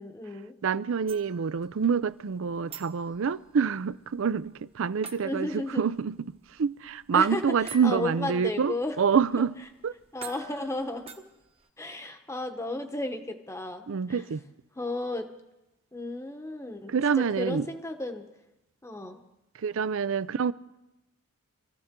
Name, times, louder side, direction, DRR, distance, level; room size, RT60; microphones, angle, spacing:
voice 1, 0.0-0.5 5.2-5.9 7.1-7.6 7.8-9.0 9.4-9.5 10.1-11.2 11.8-14.2 14.8-15.3 15.9-18.3 18.8-19.2, left 2 dB, 15° left, 1.0 m, -34 dB
voice 2, 0.6-9.5 9.8-9.9 13.9-14.4 16.9-17.7 19.6-20.5, right 6 dB, 65° right, 0.4 m, -27 dB
Baby Xylophone, 1.1-11.7, right 6 dB, 25° right, 0.9 m, -49 dB
24.5 x 14.5 x 3.7 m
head